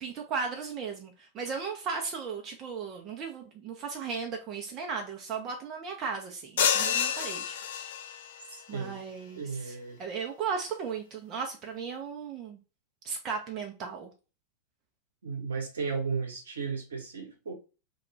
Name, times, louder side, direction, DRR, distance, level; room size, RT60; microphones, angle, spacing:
voice 1, 0.0-7.6 8.7-12.6 13.0-14.1, right 5 dB, 35° right, 0.5 m, -36 dB
sound 1, 6.6-8.4, left 8 dB, 60° left, 0.4 m, -28 dB
voice 2, 8.5-9.0 9.4-10.0 15.2-17.5, right 5 dB, 70° right, 0.9 m, -34 dB
2.3 x 2.2 x 3.0 m
figure-of-eight pair, 90°, 0 cm